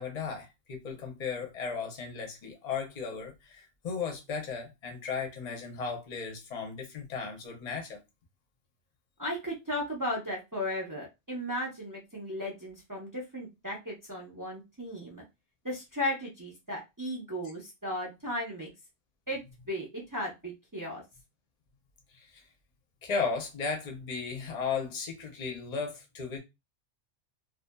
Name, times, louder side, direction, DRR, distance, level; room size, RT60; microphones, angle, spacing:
voice 1, 0.0-8.0 22.1-22.5 23.0-26.4, left 5 dB, 40° left, 0.7 m, -35 dB
voice 2, 9.2-15.2 15.6-18.7 19.3-19.4 19.7-21.0, left 1 dB, 20° right, 0.5 m, -35 dB
2.6 x 2.4 x 2.2 m
omnidirectional pair, 1.2 m